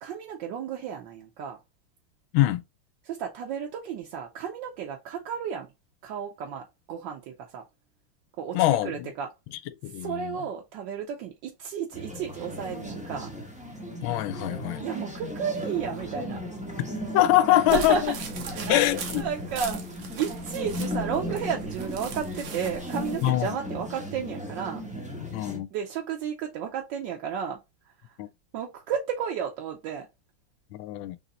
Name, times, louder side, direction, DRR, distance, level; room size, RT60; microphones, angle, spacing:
voice 1, 0.0-1.6 3.0-5.7 6.0-7.6 8.4-9.3 9.9-13.3 14.8-16.4 17.5-18.1 18.5-24.8 25.7-27.6 28.5-30.1, right 7 dB, 70° right, 1.3 m, -33 dB
voice 2, 8.5-9.1 9.8-10.4 14.0-14.8 17.1-18.1 18.7-19.2 23.2-23.5 25.3-25.7 28.2-28.3 30.7-31.2, left 15 dB, 75° left, 1.3 m, -23 dB
sound 1, 11.9-25.6, left 1 dB, 10° right, 0.4 m, -36 dB
sound 2, 17.7-23.3, right 4 dB, 85° right, 1.8 m, -40 dB
4.1 x 3.0 x 3.9 m
omnidirectional pair, 2.3 m